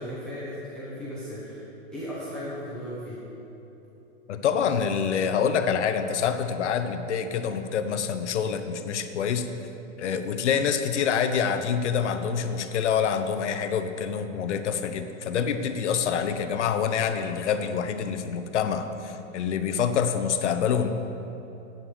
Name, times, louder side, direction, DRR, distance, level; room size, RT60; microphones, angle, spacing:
voice 1, 0.0-3.2, equal, ahead, -11 dB, 1.0 m, -36 dB
voice 2, 4.3-9.5 10.0-20.9, left 7 dB, 60° left, 8 dB, 0.8 m, -26 dB
8.7 x 7.9 x 6.3 m, 3.0 s
hypercardioid pair, 170°, 40 cm